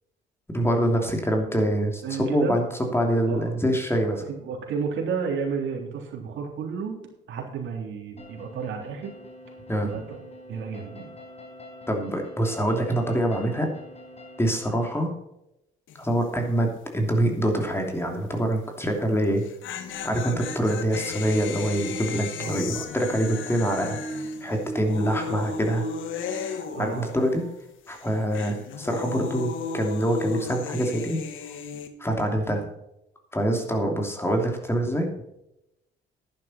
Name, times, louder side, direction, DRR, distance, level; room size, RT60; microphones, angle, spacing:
voice 1, 0.5-4.2 9.7-9.9 11.9-13.7 14.4-15.1 16.0-19.4 20.0-24.0 24.4-25.9 26.8-27.4 27.9-31.2 32.0-32.7 33.3-35.1, right 1 dB, 10° left, 2 dB, 2.9 m, -25 dB
voice 2, 2.0-2.6 3.3-3.5 4.1-7.0 7.3-9.1 9.8-10.2 10.5-11.1 22.4-22.6 26.7-27.1, right 5 dB, 75° right, 0 dB, 3.5 m, -32 dB
sound 1, 8.2-15.0, left 1 dB, 30° left, 4.4 m, -45 dB
sound 2, 15.9-16.2 16.5-16.6 19.2-27.6 27.9-31.9, left 6 dB, 80° left, 1.5 m, -35 dB
sound 3, 19.8-27.5 28.2-28.3 29.3-29.4, right 2 dB, 30° right, 3.7 m, -38 dB
11.0 x 10.5 x 4.3 m, 0.85 s
cardioid pair, 90°, 20 cm